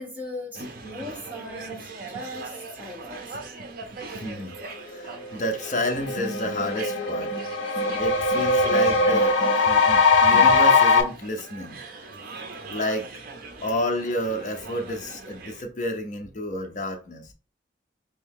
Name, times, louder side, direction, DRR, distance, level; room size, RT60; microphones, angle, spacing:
voice 1, 0.0-3.4, left 1 dB, 10° right, 1.1 m, -39 dB
sound 1, 0.5-15.6, right 3 dB, 50° right, 0.5 m, -39 dB
voice 2, 4.2-4.6 4.8-7.3 7.9-11.8 12.7-13.1 13.6-17.3, left 1 dB, 40° left, 0.6 m, -30 dB
sound 2, 5.2-5.3 5.7-11.0, left 3 dB, 85° left, 0.5 m, -20 dB
3.3 x 2.7 x 3.6 m
head